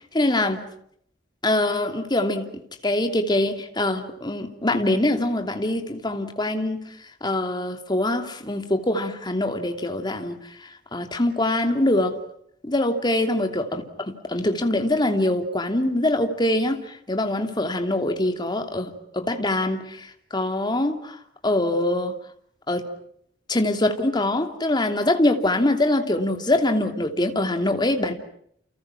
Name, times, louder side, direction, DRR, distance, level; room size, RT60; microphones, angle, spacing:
voice 1, 0.1-0.6 1.4-2.5 2.8-6.8 7.2-10.4 10.9-12.2 12.6-21.2 21.4-22.1 22.7-22.9 23.5-28.1, left 1 dB, 25° left, 5 dB, 2.9 m, -23 dB
30.0 x 29.5 x 6.0 m, 0.68 s
head